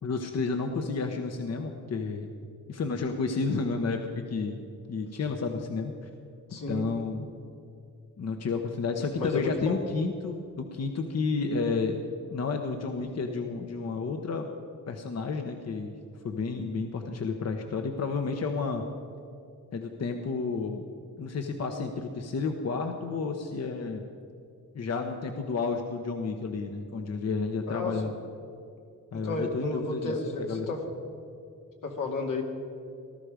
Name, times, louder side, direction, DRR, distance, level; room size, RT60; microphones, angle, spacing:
voice 1, 0.0-2.3 2.7-4.6 4.9-5.9 6.7-7.3 8.2-12.0 12.3-14.5 14.9-15.9 16.2-18.8 19.7-20.8 21.2-24.0 24.7-28.1 29.1-30.7, left 4 dB, 55° left, 4 dB, 1.1 m, -31 dB
voice 2, 6.5-6.9 9.2-9.8 27.7-28.0 29.1-30.8 31.8-32.4, left 3 dB, 85° left, 0 dB, 2.7 m, -32 dB
19.0 x 12.5 x 5.1 m, 2.5 s
cardioid pair, 110°, 31 cm